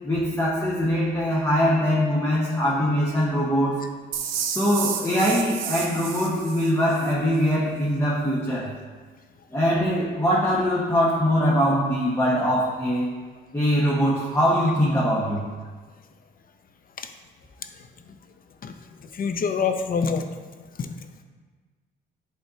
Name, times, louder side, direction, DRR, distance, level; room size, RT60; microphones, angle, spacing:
voice 1, 0.0-3.8 4.5-8.7 9.5-13.1 13.5-15.4, equal, 15° left, -6 dB, 1.4 m, -22 dB
sound 1, 4.1-7.1, right 8 dB, 90° right, 0.8 m, -31 dB
voice 2, 19.1-20.2 20.8-20.9, left 5 dB, 45° left, 7 dB, 0.7 m, -25 dB
11.0 x 4.2 x 2.8 m, 1.5 s
cardioid pair, 90°, 20 cm